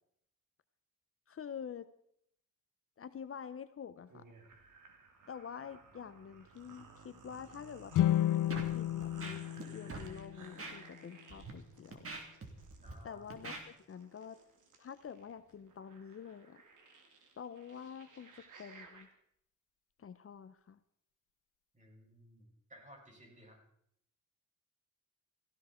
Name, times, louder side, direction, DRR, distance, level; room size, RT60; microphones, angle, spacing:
voice 1, 1.3-1.9 3.0-4.2 5.3-9.4 9.7-12.1 13.0-14.4 14.8-16.6 17.4-19.1 20.0-20.8, left 7 dB, 45° left, 13 dB, 0.8 m, -47 dB
sound 1, 4.1-19.1, right 4 dB, 85° right, 2.8 m, -58 dB
sound 2, 7.9-11.2, left 12 dB, 90° left, 0.5 m, -33 dB
Scratching (performance technique), 8.5-8.7 9.0-9.6 9.9-10.1 10.6-10.7 11.3-11.5 11.9-12.9 13.3-13.6, right 3 dB, 50° right, 3.4 m, -44 dB
voice 2, 12.8-13.2 21.7-23.6, equal, 25° right, 0 dB, 6.2 m, -58 dB
17.5 x 15.5 x 4.4 m, 0.72 s
cardioid pair, 105°, 30 cm